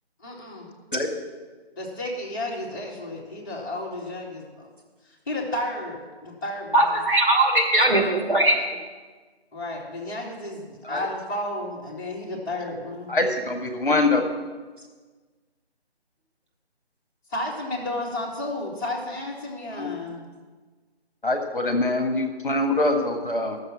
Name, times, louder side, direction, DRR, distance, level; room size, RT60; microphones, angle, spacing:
voice 1, 0.2-0.7 1.8-4.6 5.0-7.0 9.5-13.1 17.3-20.3, left 1 dB, 20° left, -7 dB, 2.2 m, -32 dB
voice 2, 6.7-8.8, right 1 dB, 50° right, 0 dB, 2.2 m, -20 dB
voice 3, 13.1-14.3 19.7-19.9 21.2-23.6, left 2 dB, 50° left, 5 dB, 1.5 m, -24 dB
13.0 x 7.0 x 7.3 m, 1.4 s
figure-of-eight pair, 160°, 32 cm